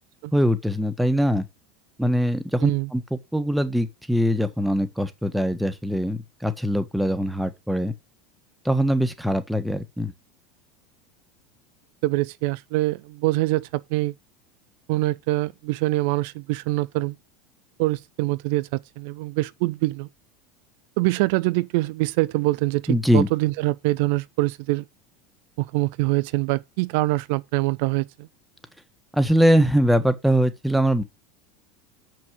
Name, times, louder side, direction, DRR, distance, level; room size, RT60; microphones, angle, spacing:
voice 1, 0.3-1.4 2.0-7.9 8.6-10.1 22.9-23.3 29.1-31.0, equal, ahead, 1.5 m, -22 dB
voice 2, 12.0-14.1 14.9-17.2 17.8-20.1 21.0-24.8 25.6-28.1, right 20 dB, 60° right, 0.5 m, -24 dB
7.1 x 6.2 x 7.6 m
hypercardioid pair, 80°, 0 cm